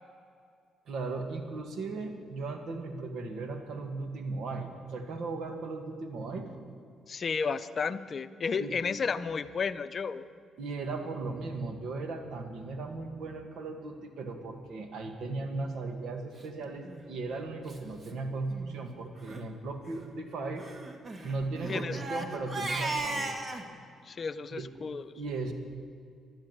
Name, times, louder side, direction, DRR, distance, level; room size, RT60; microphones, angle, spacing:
voice 1, 0.9-6.5 8.5-8.8 10.6-20.7 21.2-23.5 24.5-24.7 25.2-25.5, right 3 dB, 70° right, 6 dB, 2.0 m, -37 dB
voice 2, 7.1-10.3 21.7-22.0 24.1-25.0, left 5 dB, 45° left, 12 dB, 0.6 m, -32 dB
Crying sobbing, 16.8-17.0 17.7-17.8 18.0-18.2 18.5-18.7 19.2-19.4 20.6-23.6, right 2 dB, 40° right, 1.6 m, -36 dB
15.0 x 12.0 x 8.2 m, 2.3 s
cardioid pair, 90°, 0 cm